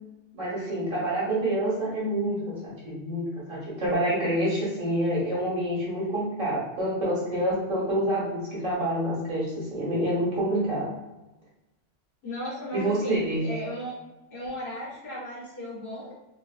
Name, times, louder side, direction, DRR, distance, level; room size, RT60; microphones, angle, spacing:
voice 1, 0.3-10.8 12.7-13.5, right 1 dB, 85° right, -7 dB, 1.7 m, -27 dB
voice 2, 12.2-14.0 14.3-16.1, left 1 dB, 50° left, -7 dB, 1.0 m, -35 dB
3.7 x 2.2 x 2.4 m, 1.0 s
omnidirectional pair, 1.3 m